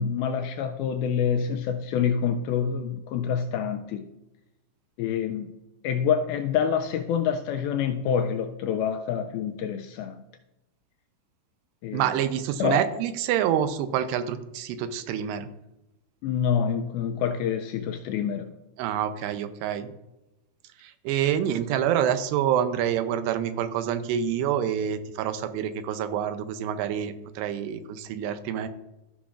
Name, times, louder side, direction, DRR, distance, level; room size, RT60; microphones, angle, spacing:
voice 1, 0.0-4.1 5.0-5.6 5.8-10.2 11.8-12.2 12.6-12.8 16.2-18.5, left 7 dB, 85° left, 7 dB, 2.2 m, -27 dB
voice 2, 11.9-15.5 18.8-19.9 20.8-28.7, right 9 dB, 85° right, 10 dB, 2.8 m, -27 dB
14.0 x 6.1 x 2.4 m, 0.96 s
omnidirectional pair, 4.7 m